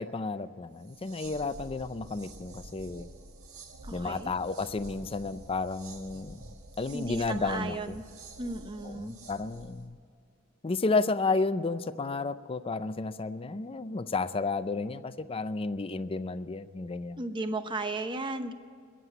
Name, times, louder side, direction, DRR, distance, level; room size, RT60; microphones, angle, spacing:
voice 1, 0.0-3.1 3.9-6.4 6.8-8.0 8.8-10.0 10.6-17.2, left 3 dB, 25° left, 13 dB, 0.5 m, -32 dB
sound 1, 0.8-9.9, right 2 dB, 90° right, 1.6 m, -48 dB
voice 2, 3.8-4.3 6.9-8.0 8.4-9.2 17.2-18.5, right 2 dB, 25° right, 9 dB, 0.9 m, -35 dB
21.0 x 7.6 x 8.2 m, 2.3 s
head